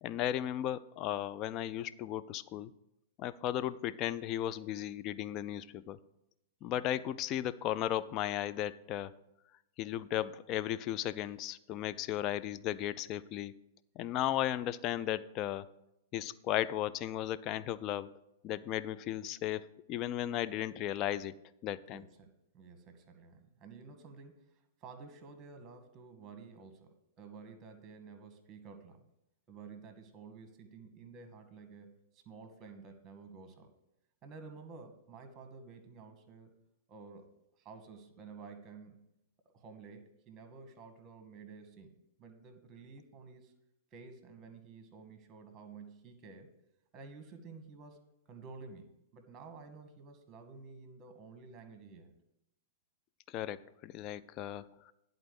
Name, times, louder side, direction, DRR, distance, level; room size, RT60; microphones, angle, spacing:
voice 1, 0.0-2.7 3.2-6.0 6.6-9.1 9.8-13.6 14.0-15.7 16.1-18.1 18.4-21.4 21.6-22.0 53.3-54.9, left 12 dB, 35° left, 15 dB, 0.4 m, -35 dB
voice 2, 21.9-22.3 22.5-24.4 24.8-29.0 29.5-33.7 34.2-36.5 36.9-37.3 37.6-39.0 39.5-43.5 43.9-46.5 46.9-48.0 48.3-52.1, right 4 dB, 25° right, 7 dB, 1.3 m, -52 dB
10.5 x 4.0 x 6.7 m, 0.85 s
figure-of-eight pair, 105°, 0 cm